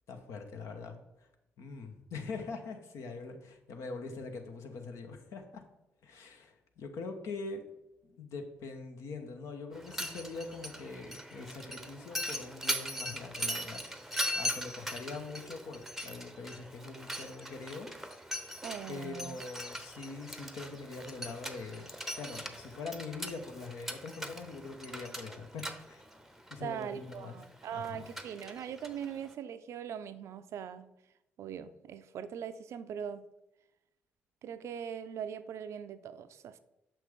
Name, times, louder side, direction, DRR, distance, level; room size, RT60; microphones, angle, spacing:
voice 1, 0.1-1.0 1.6-5.6 6.0-7.7 8.0-17.9 18.9-21.9 22.2-26.0 26.5-27.4 27.7-28.1, left 4 dB, 60° left, 5 dB, 1.0 m, -43 dB
Mechanisms, 9.7-29.3, equal, 5° right, 0.8 m, -40 dB
voice 2, 18.6-19.4 26.6-30.9 31.4-33.3 34.4-36.6, right 8 dB, 55° right, 12 dB, 0.4 m, -41 dB
7.0 x 5.9 x 3.5 m, 0.90 s
figure-of-eight pair, 45°, 6 cm